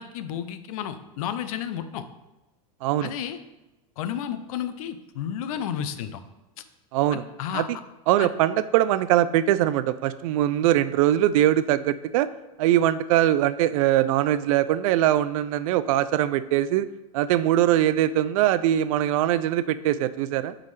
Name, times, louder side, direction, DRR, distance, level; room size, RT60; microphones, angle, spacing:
voice 1, 0.0-2.0 3.0-3.4 4.0-6.2 7.1-7.7 8.2-8.3, left 9 dB, 70° left, 11 dB, 0.6 m, -32 dB
voice 2, 2.8-3.1 6.9-7.2 7.5-7.6 8.1-12.3 12.6-16.9 17.1-20.5, right 12 dB, 65° right, 14 dB, 0.4 m, -22 dB
9.1 x 3.8 x 3.2 m, 1.0 s
supercardioid pair, 130°, 19 cm